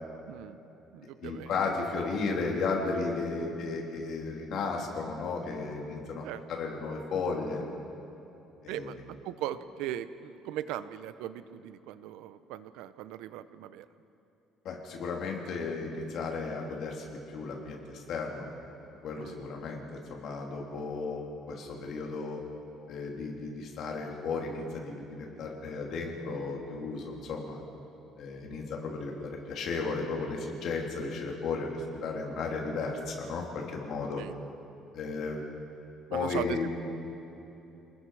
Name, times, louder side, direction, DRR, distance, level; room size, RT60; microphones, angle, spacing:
voice 1, 0.3-0.6 0.9-1.5 6.2-6.4 8.7-13.8 19.2-19.4 34.2-34.3 36.1-36.7, right 12 dB, 90° right, 13 dB, 0.8 m, -38 dB
voice 2, 1.2-6.2 6.5-7.6 8.6-8.9 14.6-18.5 19.0-22.4 22.9-27.6 28.2-34.2 34.9-35.4 36.1-36.7, left 4 dB, 50° left, 0 dB, 3.1 m, -34 dB
29.0 x 19.5 x 4.9 m, 3.0 s
cardioid pair, 175°, 0 cm